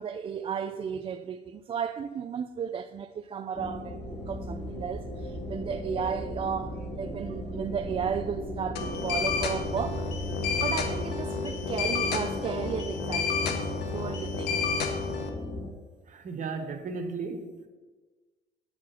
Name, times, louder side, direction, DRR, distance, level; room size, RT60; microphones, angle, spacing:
voice 1, 0.0-4.0 4.3-10.1 10.6-14.6, right 7 dB, 35° right, 0.3 m, -34 dB
sound 1, 3.5-15.7, left 2 dB, 20° left, 0.9 m, -37 dB
sound 2, 4.0-11.0, right 6 dB, 65° right, 2.0 m, -43 dB
sound 3, 8.8-15.3, left 5 dB, 75° left, 1.2 m, -31 dB
voice 2, 16.1-17.7, right 4 dB, 50° right, 1.2 m, -35 dB
9.3 x 5.0 x 5.6 m
cardioid pair, 110°, 17 cm